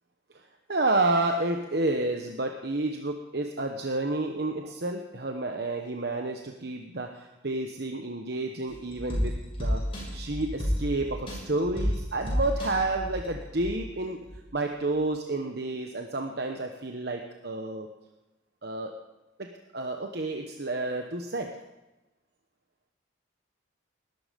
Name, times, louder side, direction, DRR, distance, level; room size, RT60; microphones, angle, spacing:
voice 1, 0.7-9.3 9.6-9.8 10.1-14.2 14.5-17.9 18.6-18.9 19.4-21.5, right 2 dB, 60° right, 3 dB, 1.1 m, -30 dB
sound 1, 8.7-13.9 14.2-14.3, equal, 30° left, 6.6 m, -31 dB
20.0 x 12.0 x 5.2 m, 1.0 s
head